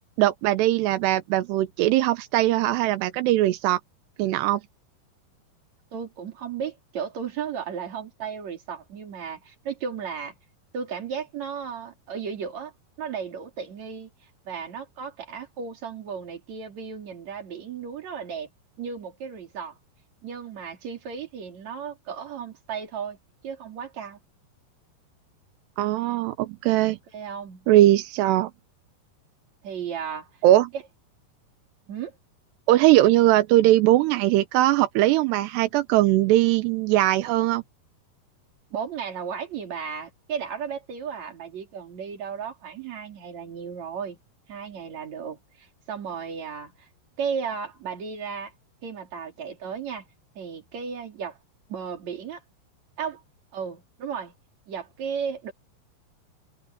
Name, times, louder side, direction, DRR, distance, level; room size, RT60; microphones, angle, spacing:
voice 1, 0.2-3.8 4.2-4.6 25.8-27.0 27.7-28.5 30.4-30.7 32.7-37.6, right 15 dB, 85° right, 3.0 m, -20 dB
voice 2, 5.9-10.3 10.7-12.7 13.0-14.1 14.5-18.5 18.8-19.8 20.2-23.2 23.4-24.2 27.1-27.7 29.6-30.3 31.9-32.1 38.7-44.2 44.5-46.9 47.2-48.5 48.8-50.1 50.4-51.4 51.7-52.4 53.0-53.2 53.5-54.3 54.7-55.5, right 7 dB, 45° right, 4.1 m, -34 dB
omnidirectional pair, 4.8 m